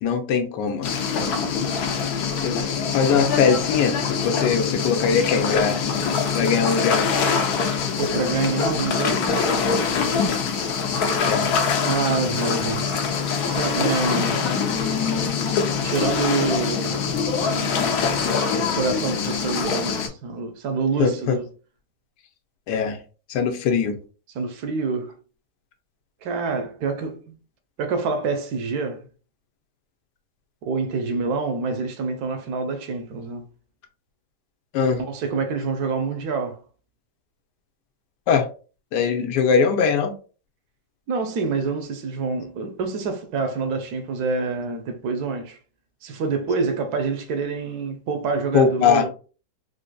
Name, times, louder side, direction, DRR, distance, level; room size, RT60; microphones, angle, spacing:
voice 1, 0.0-0.9 2.4-2.6 2.9-4.0 4.2-5.8 6.3-7.1 11.3-11.5 21.0-21.3 22.7-23.0 23.3-24.0 34.7-35.0 38.3-38.4 38.9-40.1 48.5-49.0, left 6 dB, 90° left, 1.3 m, -21 dB
sound 1, 0.8-20.1, left 5 dB, 70° left, 1.1 m, -24 dB
voice 2, 8.0-9.3 11.8-13.0 13.4-14.4 15.8-18.2 18.7-21.5 24.3-25.1 26.2-27.3 27.8-29.0 30.6-33.4 35.0-36.6 41.1-45.6 46.0-49.1, right 4 dB, 70° right, 1.1 m, -27 dB
4.1 x 2.6 x 2.2 m
omnidirectional pair, 1.8 m